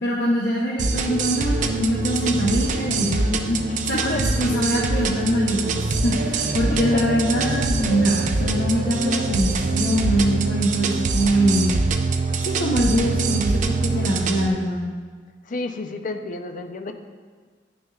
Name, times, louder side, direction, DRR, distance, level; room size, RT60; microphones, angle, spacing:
voice 1, 0.0-11.8 12.4-14.9, equal, 65° left, -5 dB, 0.8 m, -23 dB
sound 1, 0.8-14.5, right 3 dB, 45° right, 0.4 m, -24 dB
voice 2, 15.5-16.9, left 3 dB, 50° left, 6 dB, 0.5 m, -30 dB
11.0 x 6.1 x 2.4 m, 1.5 s
head